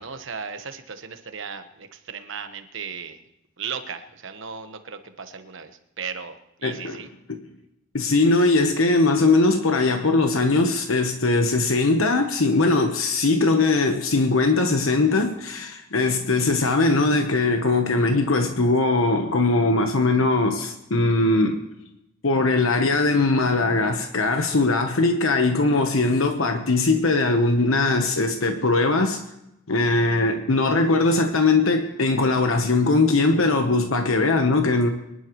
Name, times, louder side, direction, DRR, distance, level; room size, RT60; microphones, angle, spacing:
voice 1, 0.0-3.2 3.6-5.7 6.0-7.1, right 6 dB, 65° right, 8 dB, 1.2 m, -36 dB
voice 2, 6.6-7.0 7.9-21.6 22.2-29.2 29.7-34.9, left 3 dB, 85° left, 5 dB, 1.1 m, -20 dB
24.0 x 11.5 x 3.1 m, 0.85 s
head